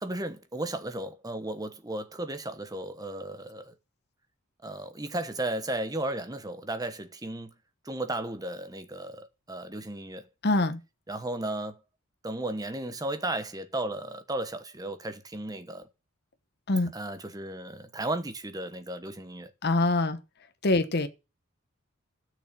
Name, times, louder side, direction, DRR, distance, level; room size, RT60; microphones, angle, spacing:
voice 1, 0.0-3.7 4.6-7.5 7.8-10.3 11.1-11.8 12.2-15.8 16.9-19.5, right 1 dB, 15° right, 1.1 m, -34 dB
voice 2, 10.4-10.8 16.7-16.9 19.6-20.2 20.6-21.1, left 2 dB, 50° left, 1.0 m, -24 dB
12.5 x 6.6 x 6.0 m
head